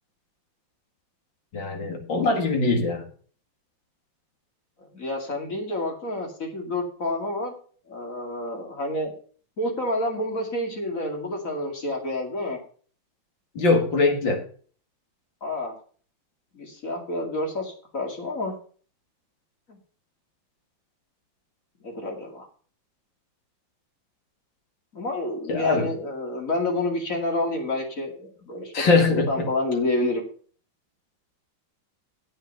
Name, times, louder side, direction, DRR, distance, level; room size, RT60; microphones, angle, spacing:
voice 1, 1.5-3.1 13.5-14.4 25.5-25.9 28.7-29.5, left 3 dB, 70° left, 3 dB, 2.8 m, -22 dB
voice 2, 4.9-7.5 7.9-9.1 9.6-12.6 15.4-15.7 16.5-18.5 19.7-19.8 21.8-22.5 24.9-28.7 29.1-30.2, left 2 dB, 40° left, 2 dB, 2.6 m, -28 dB
8.7 x 7.8 x 6.6 m, 0.43 s
omnidirectional pair, 2.2 m